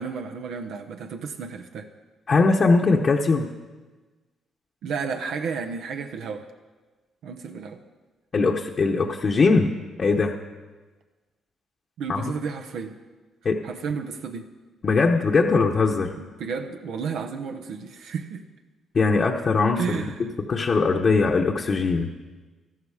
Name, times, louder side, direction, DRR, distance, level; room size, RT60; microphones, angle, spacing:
voice 1, 0.0-1.9 4.8-6.5 7.2-7.8 12.0-13.0 13.6-14.5 16.2-18.4 19.8-20.3, right 5 dB, 80° right, 5 dB, 0.8 m, -32 dB
voice 2, 2.3-3.5 8.3-9.7 10.0-10.3 12.1-12.2 13.4-13.6 14.8-16.1 18.9-19.8 20.2-22.1, left 4 dB, 45° left, -1 dB, 0.9 m, -20 dB
13.0 x 12.0 x 4.9 m, 1.3 s
cardioid pair, 90°, 0 cm